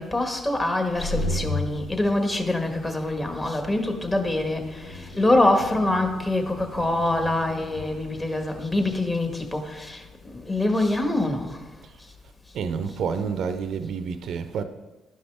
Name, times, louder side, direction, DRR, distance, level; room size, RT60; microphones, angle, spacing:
voice 1, 0.0-11.6, left 2 dB, 25° left, 1.4 m, -25 dB
sound 1, 0.8-11.2, left 2 dB, 90° left, 0.9 m, -37 dB
voice 2, 12.5-14.6, right 6 dB, 70° right, 0.5 m, -29 dB
11.5 x 5.5 x 3.4 m
supercardioid pair, 60°, 0 cm